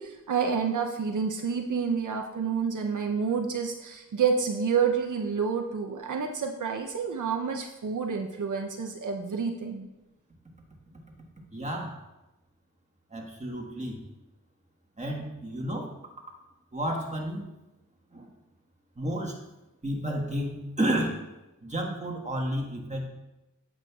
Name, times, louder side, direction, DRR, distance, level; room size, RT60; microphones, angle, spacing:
voice 1, 0.0-9.9, right 6 dB, 75° right, 3 dB, 0.7 m, -29 dB
voice 2, 11.5-12.0 13.1-14.0 15.0-15.9 16.7-17.5 18.1-18.3 19.0-19.4 19.8-21.2 21.6-23.1, right 1 dB, 20° right, 0 dB, 1.5 m, -31 dB
9.0 x 7.7 x 2.4 m, 0.98 s
wide cardioid pair, 65°, 31 cm